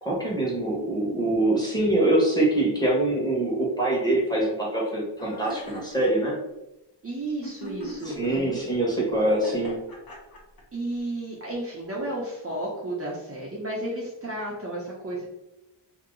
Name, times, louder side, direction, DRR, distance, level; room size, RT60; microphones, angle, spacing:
voice 1, 0.0-6.4 8.0-9.8, right 1 dB, 10° left, -4 dB, 1.3 m, -24 dB
sound 1, 5.2-5.9 7.4-8.4 9.3-10.6, equal, 50° left, 1.1 m, -39 dB
voice 2, 7.0-8.7 10.7-15.3, right 1 dB, 30° right, -5 dB, 0.8 m, -33 dB
2.9 x 2.9 x 3.8 m, 0.97 s
wide cardioid pair, 105°, 45 cm